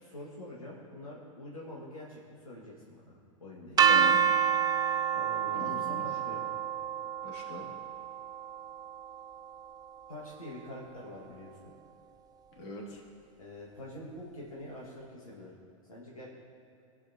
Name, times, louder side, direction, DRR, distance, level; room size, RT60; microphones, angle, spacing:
voice 1, 0.0-3.9 5.1-6.4 10.1-11.7 13.4-15.5 15.9-16.3, left 1 dB, 90° left, -5 dB, 1.9 m, -45 dB
voice 2, 3.8-4.2 5.5-6.0 7.2-7.7 12.6-13.0, left 2 dB, 60° left, -2 dB, 2.5 m, -41 dB
sound 1, 3.8-9.7, right 8 dB, 20° right, 0.5 m, -28 dB
19.0 x 8.2 x 2.9 m, 2.7 s
hypercardioid pair, 95°, 17 cm